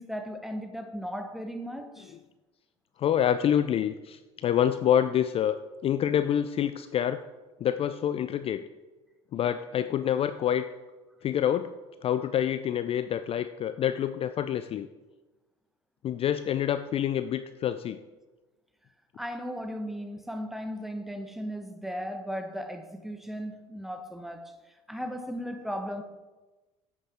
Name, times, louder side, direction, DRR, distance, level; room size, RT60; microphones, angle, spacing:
voice 1, 0.0-2.1 19.2-24.6 24.9-26.0, equal, ahead, 6 dB, 1.0 m, -36 dB
voice 2, 3.0-7.2 7.6-8.6 9.3-10.7 11.2-11.7 12.0-14.9 16.0-18.0, left 10 dB, 40° left, 11 dB, 0.4 m, -27 dB
8.1 x 5.9 x 4.4 m, 1.2 s
hypercardioid pair, 65°, 16 cm